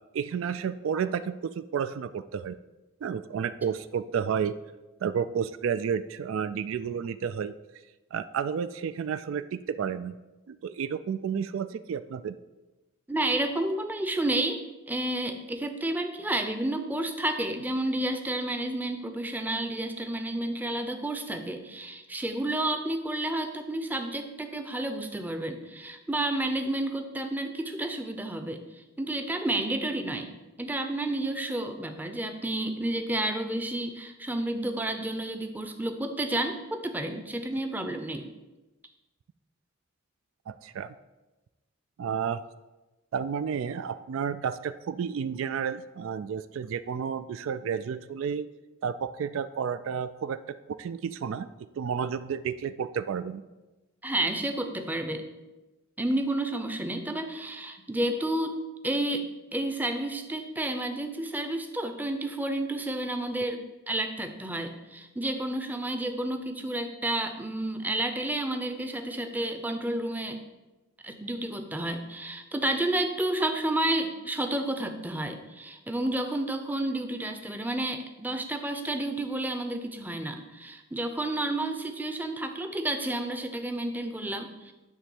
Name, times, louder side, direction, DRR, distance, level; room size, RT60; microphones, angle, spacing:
voice 1, 0.1-2.6 3.0-4.5 5.0-7.5 8.1-10.1 10.5-12.4 40.5-40.9 42.0-42.4 43.1-48.5 48.8-51.5 51.8-53.4, right 7 dB, 70° right, 13 dB, 0.3 m, -31 dB
voice 2, 13.1-28.6 29.0-38.3 54.0-55.3 56.0-58.6 58.8-59.2 59.5-70.4 71.0-84.7, right 1 dB, 10° right, 6 dB, 0.6 m, -31 dB
9.9 x 3.3 x 7.0 m, 1.1 s
head